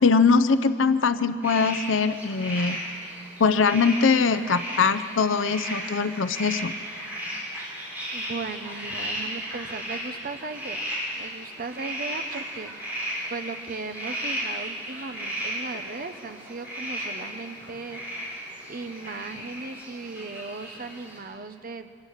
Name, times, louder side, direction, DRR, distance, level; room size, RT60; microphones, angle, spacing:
voice 1, 0.0-2.8 3.4-6.7, left 5 dB, 75° left, 12 dB, 0.6 m, -22 dB
sound 1, 1.4-21.2, equal, 10° right, 7.6 m, -35 dB
voice 2, 8.1-10.9 11.2-12.7 13.3-18.0 18.7-21.9, right 3 dB, 50° right, 8 dB, 1.0 m, -37 dB
25.5 x 19.5 x 6.6 m, 2.3 s
head